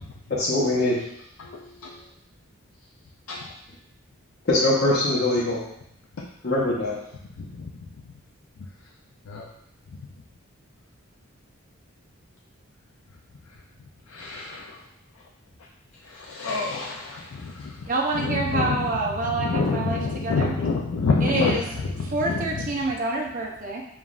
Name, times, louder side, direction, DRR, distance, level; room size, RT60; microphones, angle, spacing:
voice 1, 0.3-1.0 4.5-5.6 6.4-6.9, left 2 dB, 45° left, -7 dB, 0.8 m, -22 dB
voice 2, 14.1-14.7 16.2-17.7 18.2-18.8 19.4-21.6 22.0-22.3, left 4 dB, 65° left, -2 dB, 0.4 m, -27 dB
voice 3, 17.9-20.5 21.2-21.7 22.0-23.8, right 2 dB, 35° right, 0 dB, 0.6 m, -27 dB
6.9 x 2.4 x 2.4 m, 0.76 s
head